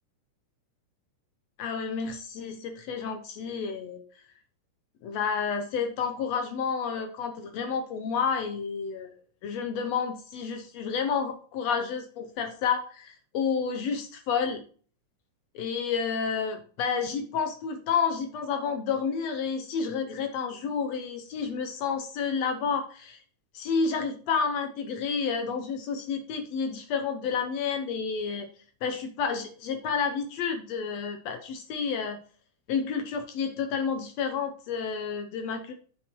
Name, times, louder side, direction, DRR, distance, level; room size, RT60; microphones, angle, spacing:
voice 1, 1.6-4.0 5.0-9.1 9.4-14.6 15.5-23.2 23.5-28.5 28.8-32.2 32.7-35.7, left 6 dB, 70° left, 7 dB, 1.7 m, -30 dB
8.5 x 6.8 x 3.0 m, 0.43 s
omnidirectional pair, 3.6 m